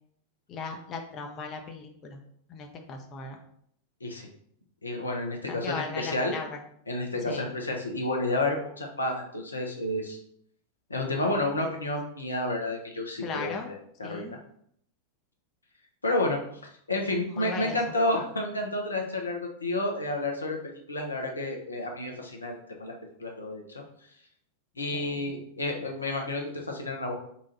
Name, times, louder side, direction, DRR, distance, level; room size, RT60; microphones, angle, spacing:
voice 1, 0.5-2.2 2.5-3.4 5.5-6.6 7.3-7.5 11.6-11.7 13.2-13.7 14.0-14.4 17.3-17.8 24.9-25.3, left 4 dB, 30° left, 3 dB, 0.6 m, -37 dB
voice 2, 4.8-6.3 6.9-10.2 10.9-14.4 16.0-16.4 16.9-22.9 23.2-23.8 24.8-27.1, left 2 dB, 80° left, 1 dB, 0.7 m, -30 dB
4.2 x 2.4 x 4.1 m, 0.67 s
figure-of-eight pair, 90°, 0 cm